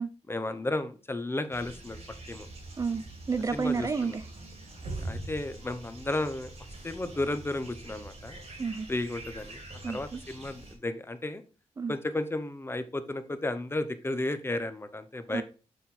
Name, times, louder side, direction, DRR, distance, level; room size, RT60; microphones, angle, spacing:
voice 1, 0.3-2.0 2.3-2.5 3.5-4.2 5.0-6.5 6.8-8.4 8.9-11.4 11.9-15.4, left 2 dB, 20° left, 0.8 m, -33 dB
sound 1, 1.5-10.8, right 2 dB, 60° right, 2.5 m, -43 dB
voice 2, 2.8-4.1 8.6-8.9 9.8-10.2 11.8-11.9 15.3-15.4, right 5 dB, 30° right, 0.4 m, -30 dB
6.4 x 3.8 x 4.3 m
cardioid pair, 75°, 12 cm